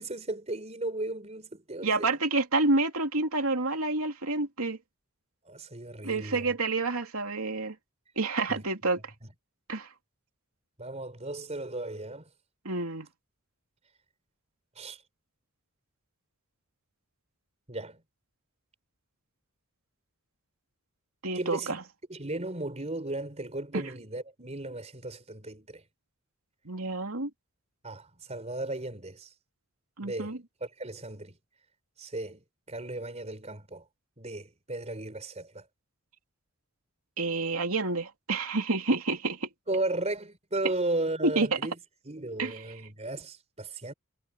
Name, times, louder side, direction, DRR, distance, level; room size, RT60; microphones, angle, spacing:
voice 1, 0.0-2.2 5.4-6.5 8.5-8.6 9.2-9.3 10.8-12.3 14.8-15.0 17.7-18.0 21.3-21.7 22.1-25.8 27.8-29.3 30.0-31.3 32.0-33.9 34.2-35.6 39.7-41.8 42.1-43.9, right 2 dB, 30° right, 4.3 m, -35 dB
voice 2, 1.8-4.8 6.0-7.8 8.2-9.0 9.7-9.9 12.6-13.1 21.2-21.8 23.7-23.8 26.6-27.3 30.0-30.4 37.2-39.5 41.2-41.6 42.4-42.6, right 3 dB, 75° right, 2.9 m, -28 dB
head